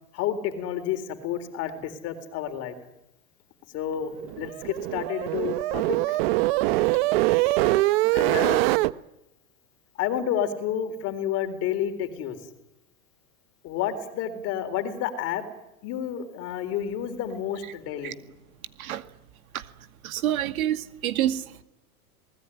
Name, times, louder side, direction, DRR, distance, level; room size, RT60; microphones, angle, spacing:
voice 1, 0.1-2.7 3.7-4.1 4.4-6.2 6.8-6.9 8.1-8.6 10.0-12.4 13.6-15.4 15.8-18.2, left 9 dB, 35° left, 9 dB, 3.8 m, -30 dB
sound 1, 4.2-8.9, right 18 dB, 45° right, 0.9 m, -23 dB
voice 2, 20.0-21.4, right 12 dB, 70° right, 9 dB, 2.3 m, -27 dB
28.5 x 19.5 x 10.0 m, 0.88 s
supercardioid pair, 155°, 44 cm